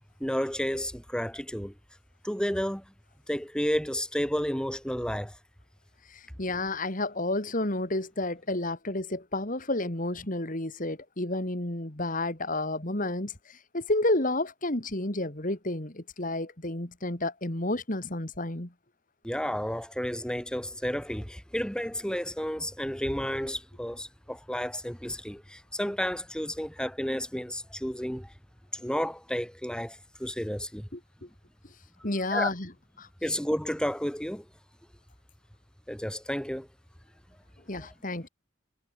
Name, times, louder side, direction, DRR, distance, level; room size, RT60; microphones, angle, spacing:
voice 1, 0.2-1.7 2.2-2.8 3.3-5.4 19.2-28.3 28.7-30.9 32.3-32.5 33.2-34.4 35.9-36.7, equal, 5° left, 2.7 m, -31 dB
voice 2, 6.1-18.7 22.1-22.2 30.9-31.3 32.0-32.7 33.0-33.1 37.7-38.3, left 2 dB, 40° left, 2.7 m, -31 dB
head